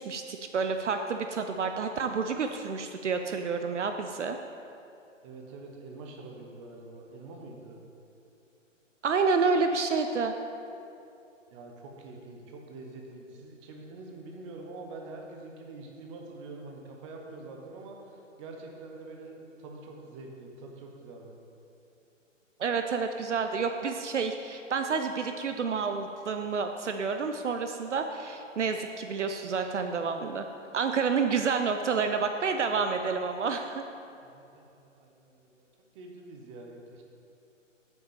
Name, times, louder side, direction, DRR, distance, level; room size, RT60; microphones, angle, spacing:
voice 1, 0.1-4.4 9.0-10.3 22.6-30.4 30.7-33.8, right 5 dB, 65° right, 6 dB, 0.7 m, -29 dB
voice 2, 5.2-7.8 11.5-21.4 34.2-35.7 35.9-37.0, right 2 dB, 25° right, 1 dB, 1.0 m, -45 dB
8.1 x 5.7 x 6.6 m, 2.7 s
figure-of-eight pair, 130°, 39 cm